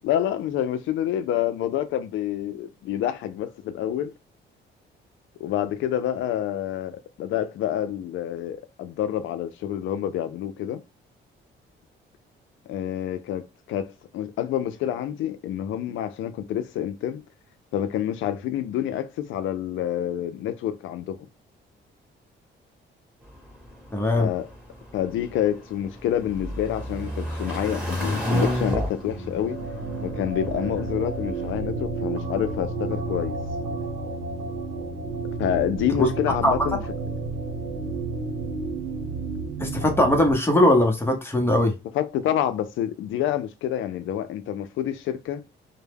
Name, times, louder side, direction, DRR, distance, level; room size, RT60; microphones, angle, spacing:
voice 1, 0.0-4.1 5.4-10.8 12.7-13.9 14.1-17.2 17.7-21.2 24.1-24.5 24.9-29.6 30.0-33.4 35.4-36.8 41.9-45.4, left 11 dB, 75° left, 0.4 m, -28 dB
sound 1, 23.3-31.6, equal, 5° right, 1.2 m, -31 dB
voice 2, 23.9-24.3 36.0-36.1 36.4-36.5 39.6-41.7, left 1 dB, 10° left, 0.8 m, -20 dB
sound 2, 28.8-40.3, right 3 dB, 80° right, 0.8 m, -31 dB
2.1 x 2.1 x 3.3 m
cardioid pair, 90°, 20 cm